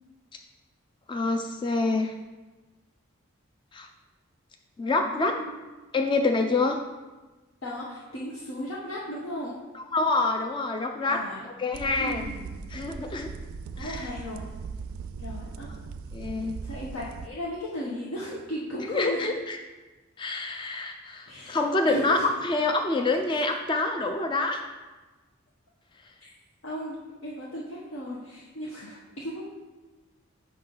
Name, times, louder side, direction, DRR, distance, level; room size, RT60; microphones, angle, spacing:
voice 1, 1.1-2.1 3.7-3.9 4.8-5.4 5.9-6.8 9.9-12.2 12.7-13.3 13.8-14.1 16.1-16.5 18.9-19.6 20.2-24.6, left 3 dB, 20° left, 4 dB, 0.3 m, -26 dB
voice 2, 5.0-5.6 7.6-9.6 11.0-11.4 11.9-12.5 13.8-14.4 15.2-15.7 16.6-19.3 21.3-22.3 26.2-26.3 26.6-27.0 27.2-29.5, equal, 75° left, -5 dB, 0.9 m, -36 dB
sound 1, 11.7-17.3, right 5 dB, 80° right, 0.3 m, -39 dB
5.6 x 3.9 x 5.4 m, 1.2 s
head